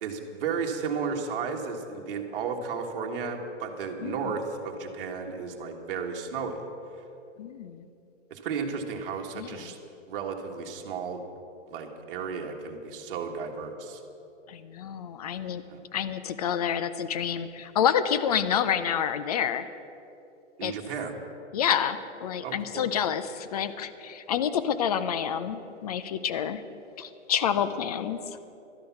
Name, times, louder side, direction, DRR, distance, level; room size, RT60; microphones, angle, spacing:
voice 1, 0.0-6.6 8.3-9.8 10.1-11.2 11.7-14.0 15.7-15.8 20.6-21.2 22.4-22.9, right 5 dB, 50° right, 2 dB, 1.5 m, -33 dB
voice 2, 4.0-4.3 7.4-7.9 9.3-9.7 14.5-15.6 15.9-19.6 20.6-20.7 21.5-26.6 27.0-28.2, left 8 dB, 35° left, 13 dB, 0.5 m, -28 dB
12.5 x 10.5 x 5.8 m, 2.8 s
hypercardioid pair, 155°, 36 cm